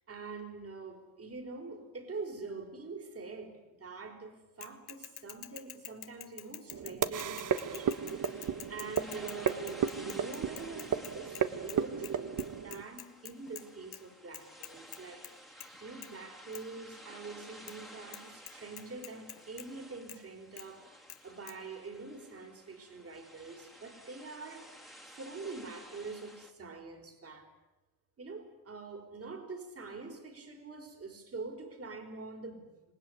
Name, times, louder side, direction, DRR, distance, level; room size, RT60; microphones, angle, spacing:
voice 1, 0.1-20.8 21.2-24.7 25.1-27.5 28.2-32.9, right 3 dB, 40° right, 5 dB, 4.5 m, -45 dB
Bicycle / Mechanisms, 4.6-11.8 12.0-12.1 12.4-13.6 13.9-14.0 14.3-15.3 15.6-15.8 16.0-16.1 16.5-16.6 17.7-17.8 18.1-18.2 18.5-19.7 20.1-20.2 20.6-20.7 21.1-21.2 21.5-21.6, left 12 dB, 85° left, 1.6 m, -46 dB
sound 1, 6.7-12.8, right 8 dB, 55° right, 1.3 m, -34 dB
sound 2, 7.5-26.5, equal, ahead, 2.5 m, -53 dB
26.5 x 19.5 x 9.9 m, 1.0 s
cardioid pair, 135°, 37 cm